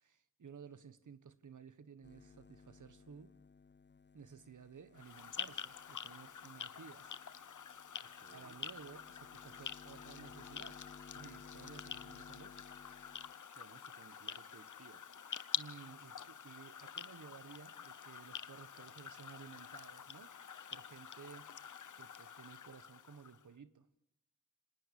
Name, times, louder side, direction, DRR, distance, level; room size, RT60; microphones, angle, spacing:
voice 1, 0.0-3.4 4.1-7.2 8.3-12.6 15.6-21.5 21.9-23.9, right 6 dB, 85° right, 13 dB, 1.2 m, -55 dB
sound 1, 2.0-13.3, left 5 dB, 35° left, 0.8 m, -59 dB
sound 2, 4.9-23.4, left 7 dB, 80° left, 0.8 m, -47 dB
voice 2, 8.0-8.6 13.5-15.1, right 4 dB, 55° right, 13 dB, 1.6 m, -61 dB
26.0 x 19.5 x 7.1 m, 0.78 s
cardioid pair, 50°, 30 cm